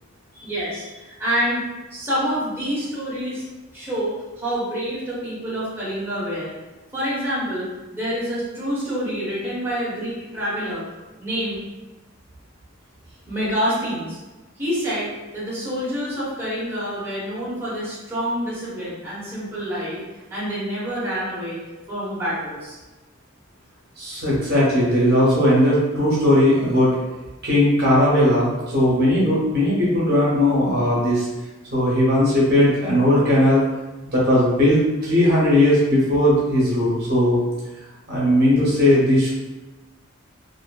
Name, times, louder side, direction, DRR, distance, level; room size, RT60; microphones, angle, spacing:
voice 1, 0.3-1.6 1.9-3.4 3.7-6.5 6.9-10.8 11.2-11.6 13.3-14.2 14.6-20.0 20.3-21.6 21.9-22.8, equal, 10° right, -9 dB, 0.9 m, -27 dB
voice 2, 24.0-26.9 27.4-31.3 31.7-33.6 34.1-37.4 38.1-39.3, left 1 dB, 50° right, -6 dB, 0.8 m, -18 dB
2.7 x 2.5 x 2.2 m, 1.1 s
head